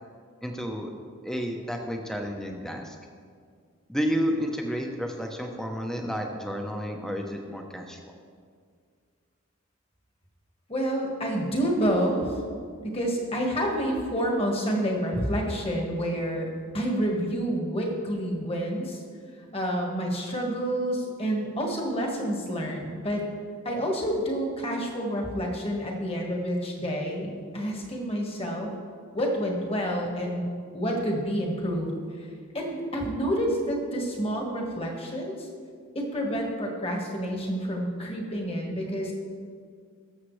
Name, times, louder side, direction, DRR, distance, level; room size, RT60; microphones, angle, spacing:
voice 1, 0.4-0.9 1.2-3.0 3.9-8.0, equal, ahead, 2 dB, 0.8 m, -31 dB
voice 2, 10.7-12.4 12.8-16.5 16.7-19.0 19.5-23.3 23.6-28.7 29.1-30.5 30.7-31.9 32.5-35.5 35.9-39.1, equal, 25° left, 0 dB, 1.6 m, -28 dB
19.5 x 7.3 x 3.2 m, 2.1 s
head